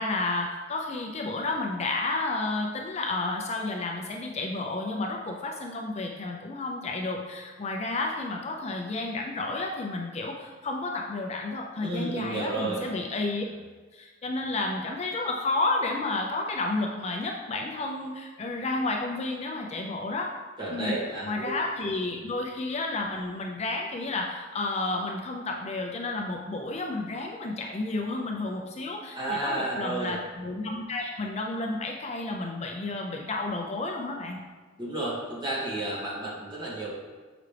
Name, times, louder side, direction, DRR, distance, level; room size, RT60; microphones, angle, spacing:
voice 1, 0.0-13.4 13.9-20.4 20.7-20.9 21.3-34.4, left 2 dB, 35° left, 1 dB, 0.5 m, -31 dB
voice 2, 11.8-12.8 20.6-21.5 29.1-30.1 34.8-36.9, right 2 dB, 25° right, -7 dB, 2.0 m, -31 dB
6.9 x 4.9 x 3.3 m, 1.4 s
head